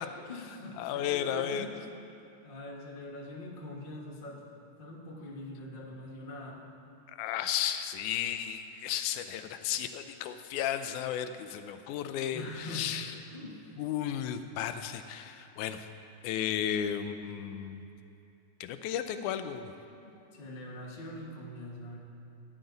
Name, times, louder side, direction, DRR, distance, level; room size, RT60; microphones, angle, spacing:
voice 1, 0.0-1.8 2.4-4.4 4.8-6.6 12.3-13.8 19.9-22.0, left 1 dB, 30° left, -3 dB, 1.0 m, -43 dB
voice 2, 0.8-1.7 7.2-13.1 13.8-15.8 16.2-17.8 18.6-19.7, left 10 dB, 85° left, 9 dB, 2.1 m, -34 dB
16.0 x 10.0 x 4.0 m, 2.9 s
omnidirectional pair, 3.5 m